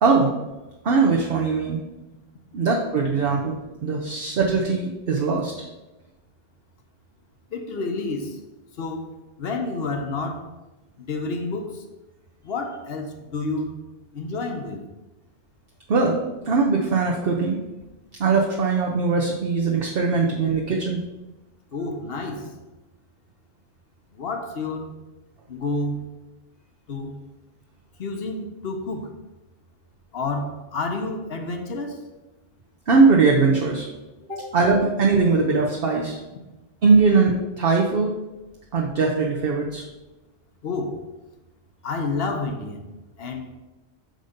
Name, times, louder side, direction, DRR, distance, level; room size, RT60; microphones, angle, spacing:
voice 1, 0.0-0.3 0.8-1.8 2.5-5.5 15.9-16.2 16.4-17.6 18.2-21.0 32.9-33.9 34.4-36.2 36.8-38.1 38.7-39.8, right 4 dB, 60° right, 0 dB, 0.9 m, -20 dB
voice 2, 7.5-8.4 8.8-9.1 9.4-10.5 11.0-11.8 12.4-13.8 14.1-14.9 21.7-22.5 24.1-24.9 25.5-26.1 26.9-27.2 28.0-29.1 30.1-32.0 34.3-34.4 40.6-41.1 41.8-42.9 43.2-43.6, left 3 dB, 65° left, 5 dB, 1.0 m, -29 dB
6.4 x 4.1 x 5.0 m, 1.1 s
omnidirectional pair, 1.1 m